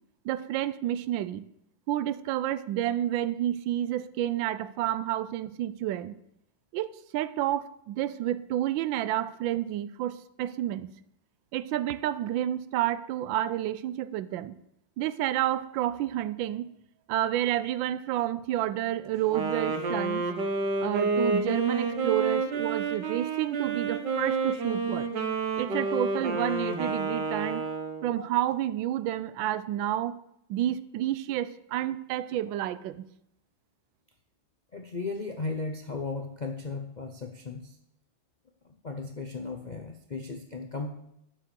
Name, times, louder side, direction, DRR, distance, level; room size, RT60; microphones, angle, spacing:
voice 1, 0.2-1.4 1.9-6.2 6.7-10.9 11.5-14.6 15.0-16.7 17.1-20.3 20.8-25.1 25.6-27.7 28.0-30.2 30.5-33.0, right 12 dB, 80° right, 16 dB, 1.3 m, -30 dB
Wind instrument woodwind instrument, 19.2-28.2, right 4 dB, 65° right, 1.9 m, -29 dB
voice 2, 34.7-37.8 38.8-40.9, left 3 dB, 85° left, 3 dB, 0.4 m, -36 dB
10.0 x 7.1 x 6.8 m, 0.76 s
omnidirectional pair, 2.1 m